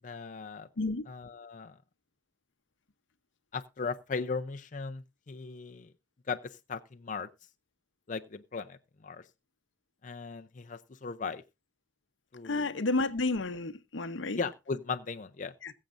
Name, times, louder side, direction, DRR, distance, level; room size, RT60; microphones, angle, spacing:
voice 1, 0.0-0.7 1.1-1.7 3.5-5.9 6.3-7.3 8.1-9.3 10.0-11.4 12.3-12.9 14.3-15.5, left 4 dB, 45° left, 0.6 m, -37 dB
voice 2, 12.4-14.4 15.6-15.7, left 2 dB, 90° left, 0.8 m, -31 dB
21.0 x 7.4 x 2.5 m
head